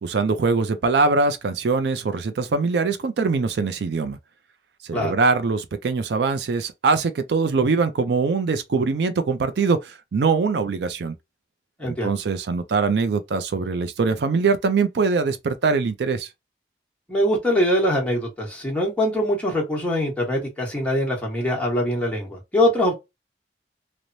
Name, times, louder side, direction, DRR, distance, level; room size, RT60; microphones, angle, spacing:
voice 1, 0.0-4.2 4.8-11.2 11.9-16.3, right 4 dB, 75° right, 0.4 m, -22 dB
voice 2, 11.8-12.1 17.1-22.9, equal, 5° left, 1.0 m, -23 dB
3.1 x 2.0 x 2.5 m
head